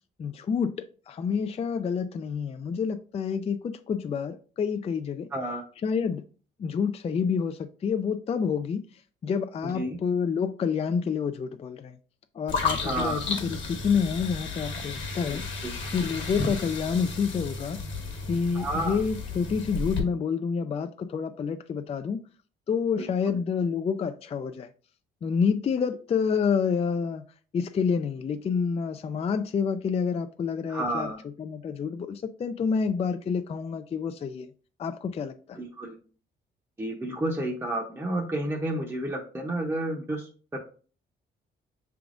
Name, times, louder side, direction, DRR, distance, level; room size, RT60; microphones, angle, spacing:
voice 1, 0.2-5.3 5.8-6.2 6.6-8.8 9.2-12.0 12.3-15.5 15.9-17.8 18.3-22.2 22.7-24.7 25.2-27.2 27.5-31.1 31.4-34.5 34.8-35.6, left 6 dB, 30° left, 0.3 m, -28 dB
voice 2, 5.3-5.6 9.6-10.0 12.8-13.2 15.3-15.7 18.5-19.0 23.0-23.4 30.7-31.2 35.5-36.0 36.8-40.6, right 1 dB, 15° right, 0.7 m, -31 dB
sound 1, 12.5-20.0, left 4 dB, 70° left, 1.2 m, -33 dB
5.8 x 3.4 x 2.5 m
cardioid pair, 90°, 20 cm